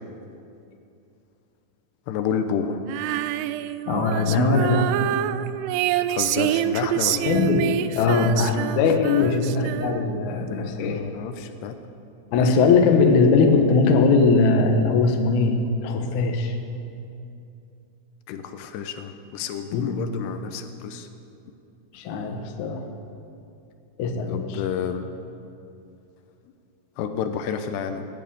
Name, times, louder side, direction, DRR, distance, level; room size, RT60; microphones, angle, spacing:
voice 1, 2.1-2.8 6.1-7.4 9.2-9.6 10.5-11.8 18.3-21.1 24.3-25.0 27.0-28.1, left 7 dB, 85° left, 8 dB, 2.9 m, -30 dB
Female singing, 2.9-10.2, right 12 dB, 85° right, 2.4 m, -26 dB
voice 2, 3.9-4.9 7.3-7.7 8.0-11.0 12.3-15.6 15.8-16.6 19.7-20.0 21.9-22.8 24.0-24.6, left 4 dB, 65° left, 4 dB, 2.1 m, -20 dB
17.0 x 8.9 x 9.1 m, 2.6 s
omnidirectional pair, 4.9 m